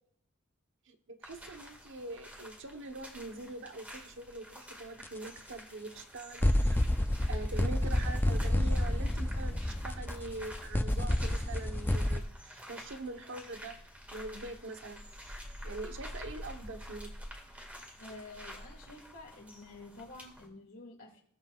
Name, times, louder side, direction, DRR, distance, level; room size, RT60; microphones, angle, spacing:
voice 1, 0.9-6.8 7.3-13.7 14.1-15.0 15.2-17.1, right 2 dB, 60° right, 5 dB, 1.1 m, -43 dB
sound 1, 1.2-20.5, equal, 5° right, 1.9 m, -49 dB
sound 2, 5.0-5.1 6.4-12.2, left 1 dB, 10° left, 0.4 m, -29 dB
voice 2, 18.0-21.2, left 2 dB, 70° left, -3 dB, 2.3 m, -49 dB
20.5 x 7.2 x 2.4 m, 0.68 s
head